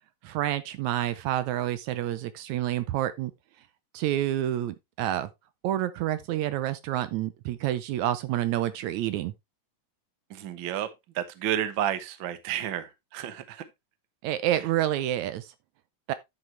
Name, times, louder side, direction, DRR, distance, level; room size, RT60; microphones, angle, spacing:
voice 1, 0.2-3.3 3.9-5.3 5.6-9.3 14.2-15.5 16.1-16.2, right 13 dB, 75° right, 2.0 m, -28 dB
voice 2, 10.3-10.9 11.1-13.6 14.6-14.7, right 10 dB, 55° right, 1.4 m, -31 dB
11.0 x 6.5 x 3.2 m
omnidirectional pair, 3.5 m